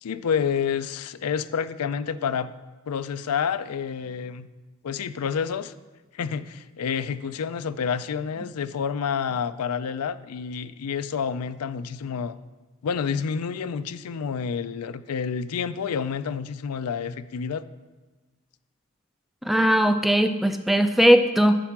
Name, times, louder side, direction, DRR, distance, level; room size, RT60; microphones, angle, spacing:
voice 1, 0.0-2.5 2.9-4.5 4.8-5.7 6.1-12.4 12.8-17.7, left 6 dB, 85° left, 13 dB, 0.4 m, -29 dB
voice 2, 19.5-21.6, equal, ahead, 9 dB, 0.3 m, -19 dB
10.0 x 4.5 x 5.9 m, 1.2 s
head